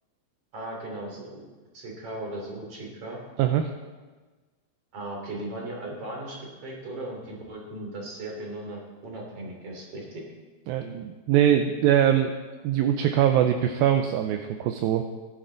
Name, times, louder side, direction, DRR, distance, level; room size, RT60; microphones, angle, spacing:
voice 1, 0.5-1.4 1.7-3.2 4.9-10.2, right 1 dB, 40° right, -1 dB, 3.8 m, -37 dB
voice 2, 3.4-3.7 10.7-12.3 12.6-15.0, right 10 dB, 80° right, 6 dB, 2.4 m, -22 dB
19.0 x 11.0 x 3.9 m, 1.3 s
omnidirectional pair, 4.4 m